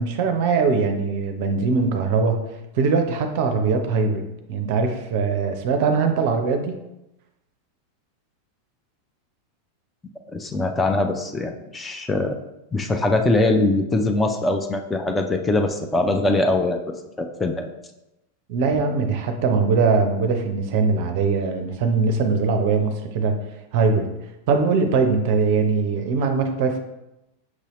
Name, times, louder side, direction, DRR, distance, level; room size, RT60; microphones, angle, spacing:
voice 1, 0.0-2.4 2.7-6.8 18.5-23.3 23.7-24.1 24.5-26.8, right 4 dB, 50° right, 6 dB, 0.5 m, -21 dB
voice 2, 10.3-12.4 12.7-16.8 17.2-17.7, left 2 dB, 10° left, 4 dB, 0.4 m, -22 dB
6.0 x 2.7 x 3.0 m, 0.91 s
figure-of-eight pair, 90°, 0 cm